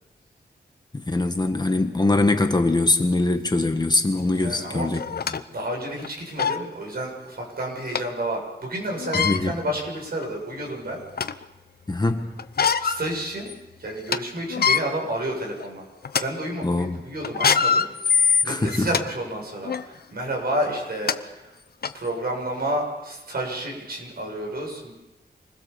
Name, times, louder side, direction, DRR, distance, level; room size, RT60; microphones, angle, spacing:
voice 1, 1.0-5.0 5.3-5.4 9.1-9.5 11.9-12.3 16.6-17.0 18.4-18.9, left 2 dB, 25° left, 5 dB, 1.6 m, -22 dB
sound 1, 4.2-4.3 4.9-5.4 6.0-6.1 6.4-6.6 7.9-8.0 9.0-9.4 10.2-10.3 10.7-11.4 12.4-13.0 13.4-13.5 13.9-14.2 14.5-14.8 15.4-15.6 16.0-16.2 17.2-19.0 19.6-19.8 20.7-20.8 21.1-21.2 21.8-21.9, left 6 dB, 60° left, 0.9 m, -22 dB
voice 2, 4.3-4.9 5.5-11.3 12.8-13.5 13.8-15.9 16.2-18.1 18.4-21.6 21.9-24.9, right 1 dB, 60° right, 0 dB, 7.4 m, -30 dB
27.0 x 21.0 x 7.1 m, 1.0 s
wide cardioid pair, 150°, 17 cm